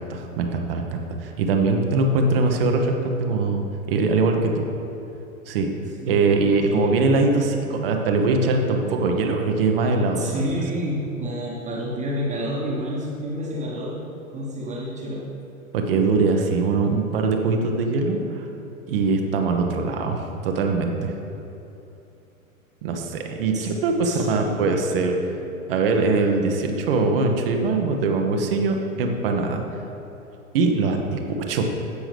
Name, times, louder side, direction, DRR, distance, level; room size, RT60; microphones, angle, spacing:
voice 1, 0.1-4.6 5.5-5.7 6.0-10.5 15.7-18.5 18.9-21.1 22.8-25.1 25.7-29.6 30.5-31.8, right 3 dB, 45° right, 3 dB, 1.0 m, -22 dB
voice 2, 6.0-7.0 10.2-14.0 14.3-15.2 23.5-23.6 24.0-24.5, equal, 15° right, -4 dB, 1.3 m, -29 dB
14.5 x 6.1 x 3.4 m, 2.9 s
figure-of-eight pair, 100°, 41 cm